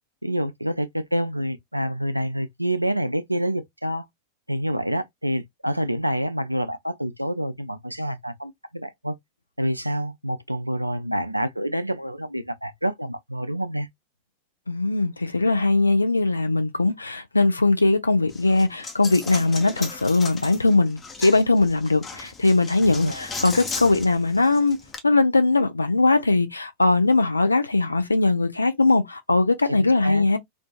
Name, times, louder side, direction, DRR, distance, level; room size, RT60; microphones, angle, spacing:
voice 1, 0.2-4.0 4.5-9.1 9.6-13.9 22.9-23.2 29.7-30.3, equal, 90° right, 0.3 m, -27 dB
voice 2, 14.7-24.8 25.0-30.4, left 3 dB, 80° left, 0.4 m, -20 dB
Coin (dropping), 18.3-25.0, left 4 dB, 20° left, 0.6 m, -37 dB
2.5 x 2.3 x 2.2 m
figure-of-eight pair, 90°, 0 cm